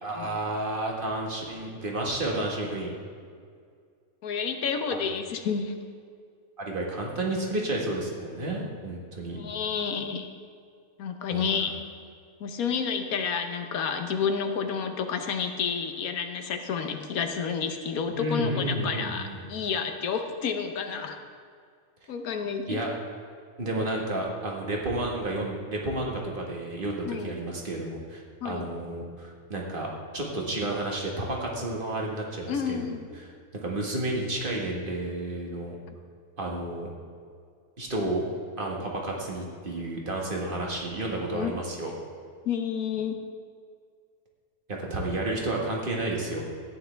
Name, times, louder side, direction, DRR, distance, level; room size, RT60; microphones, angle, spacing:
voice 1, 0.0-2.9 4.9-5.0 6.6-9.4 11.3-11.7 18.1-19.5 22.7-22.9 23.6-29.9 30.1-32.9 33.6-35.8 36.4-36.9 37.8-38.3 38.6-41.9 44.7-46.5, right 2 dB, 40° right, -1 dB, 1.8 m, -31 dB
voice 2, 4.2-5.8 9.4-10.3 11.0-11.7 12.4-21.2 22.1-22.8 27.0-27.3 28.4-28.7 32.5-33.1 41.3-41.5 42.4-43.2, left 6 dB, 80° left, 6 dB, 1.3 m, -30 dB
14.0 x 9.7 x 3.4 m, 2.1 s
omnidirectional pair, 1.5 m